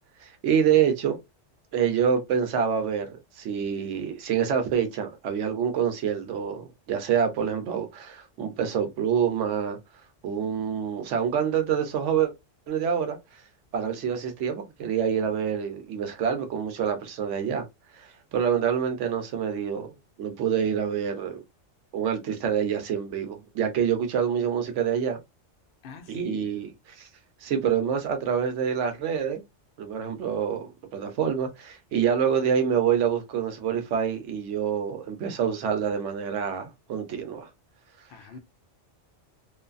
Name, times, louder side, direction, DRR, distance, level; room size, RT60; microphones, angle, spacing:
voice 1, 0.2-1.2 1.7-9.8 10.2-12.3 12.7-13.2 13.7-17.6 17.9-19.9 20.2-21.4 21.9-25.2 26.1-27.1 27.4-29.4 29.8-37.5, right 8 dB, 75° right, 1.0 m, -26 dB
voice 2, 25.8-26.5 38.1-38.4, left 5 dB, 60° left, 0.6 m, -43 dB
2.5 x 2.3 x 2.4 m
omnidirectional pair, 1.2 m